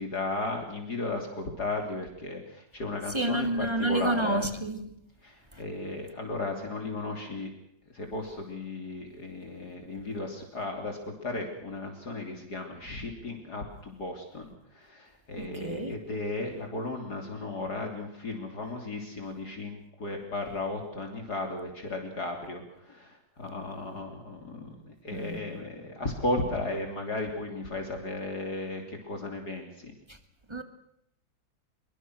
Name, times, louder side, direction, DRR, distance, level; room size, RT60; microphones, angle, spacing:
voice 1, 0.0-4.5 5.2-7.5 7.9-29.9, left 2 dB, 50° left, 3.7 m, -35 dB
voice 2, 3.1-4.9 15.4-15.9 25.1-25.4 30.5-30.6, right 1 dB, 15° right, 2.1 m, -29 dB
23.5 x 23.5 x 6.3 m
omnidirectional pair, 2.3 m